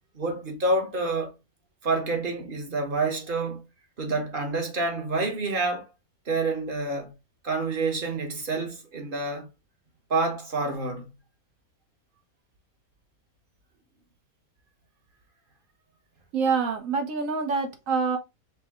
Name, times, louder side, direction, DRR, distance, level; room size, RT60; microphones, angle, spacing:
voice 1, 0.1-1.3 1.8-3.6 4.0-5.9 6.3-7.1 7.4-9.5 10.1-11.1, right 3 dB, 40° right, 1.1 m, -28 dB
voice 2, 16.3-18.2, right 5 dB, 70° right, 1.3 m, -26 dB
5.7 x 2.2 x 3.5 m
omnidirectional pair, 1.5 m